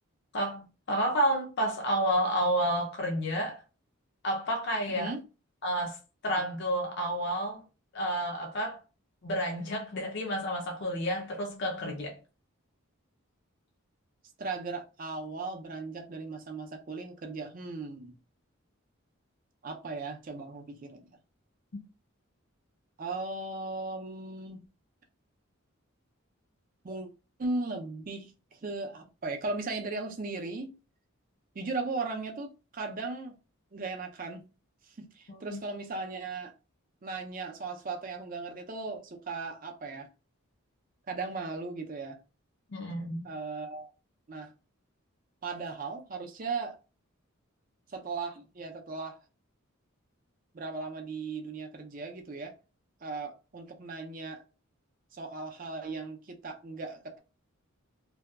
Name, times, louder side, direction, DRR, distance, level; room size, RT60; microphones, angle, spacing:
voice 1, 0.3-3.6 4.2-5.1 5.6-6.0 6.2-7.6 7.9-8.8 9.2-12.2 35.3-35.6 42.7-43.3, right 1 dB, 50° left, 0.5 m, -30 dB
voice 2, 4.9-5.2 14.4-18.1 19.6-21.1 23.0-24.7 26.8-27.1 27.4-30.7 31.5-33.4 33.7-34.5 35.0-36.5 37.0-40.1 41.1-42.2 43.2-43.9 44.3-44.5 45.4-46.8 47.9-49.2 50.5-52.5 53.0-54.4 55.1-57.2, right 3 dB, 40° right, 0.4 m, -37 dB
2.7 x 2.2 x 2.2 m
head